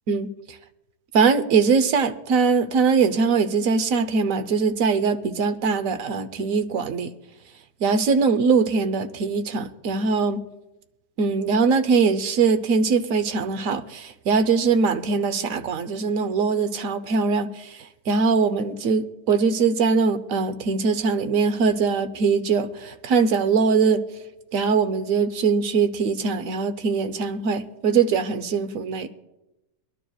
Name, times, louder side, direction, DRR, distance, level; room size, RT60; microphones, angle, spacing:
voice 1, 1.1-7.1 7.8-10.4 11.2-17.8 18.1-24.0 24.5-29.1, right 5 dB, 60° right, 10 dB, 1.1 m, -22 dB
23.5 x 11.5 x 2.3 m, 0.97 s
omnidirectional pair, 1.7 m